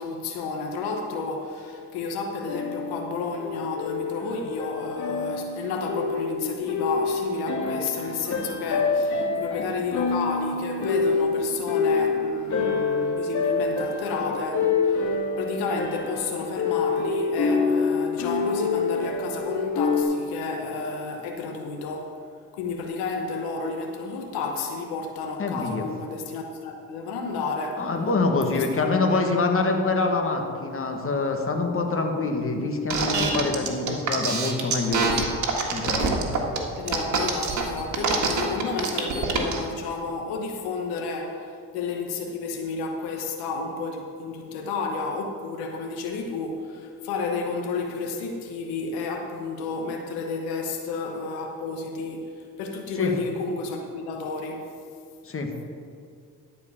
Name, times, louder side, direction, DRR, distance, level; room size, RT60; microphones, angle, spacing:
voice 1, 0.0-22.2 22.5-27.9 28.5-29.2 36.8-52.3 52.6-54.7, left 4 dB, 90° left, 3 dB, 1.1 m, -31 dB
sound 1, 2.5-20.0, left 4 dB, 50° left, 1.9 m, -27 dB
voice 2, 25.4-25.9 27.8-35.2 35.7-36.2 52.9-53.1 55.2-55.5, left 3 dB, 35° left, 3 dB, 1.6 m, -25 dB
sound 2, 32.9-39.6, right 4 dB, 50° right, 1.8 m, -25 dB
12.0 x 4.8 x 7.2 m, 2.2 s
supercardioid pair, 75°, 37 cm